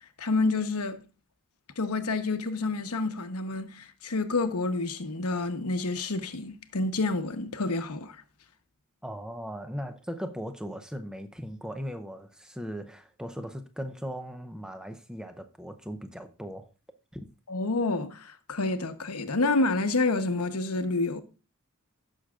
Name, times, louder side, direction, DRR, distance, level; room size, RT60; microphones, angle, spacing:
voice 1, 0.2-1.0 1.8-8.2 17.5-21.2, left 3 dB, 80° left, 1.0 m, -28 dB
voice 2, 9.0-16.7 17.1-17.2, equal, 5° right, 0.6 m, -38 dB
16.5 x 6.3 x 2.4 m
head